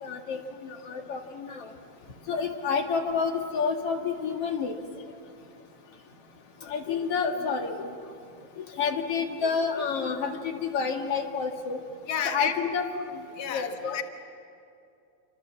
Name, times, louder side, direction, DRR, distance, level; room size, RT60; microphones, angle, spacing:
voice 1, 0.0-1.7 2.3-4.7 6.7-7.8 8.6-11.8 12.2-12.9 13.5-14.0, left 5 dB, 50° left, 3 dB, 2.5 m, -29 dB
voice 2, 12.1-12.7 13.4-14.0, left 8 dB, 80° left, 5 dB, 0.9 m, -31 dB
29.0 x 25.5 x 7.5 m, 2.5 s
omnidirectional pair, 4.1 m